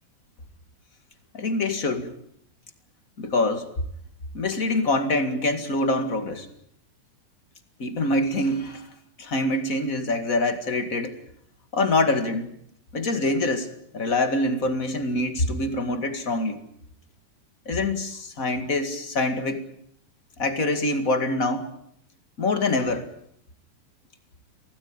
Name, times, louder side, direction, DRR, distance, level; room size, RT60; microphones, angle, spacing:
voice 1, 1.3-2.1 3.2-3.7 4.3-6.5 7.8-8.9 9.2-11.2 11.7-12.5 12.9-16.6 17.7-19.6 20.4-21.7 22.4-23.1, left 2 dB, 30° left, 8 dB, 2.0 m, -25 dB
25.5 x 17.5 x 8.9 m, 0.71 s
omnidirectional pair, 3.7 m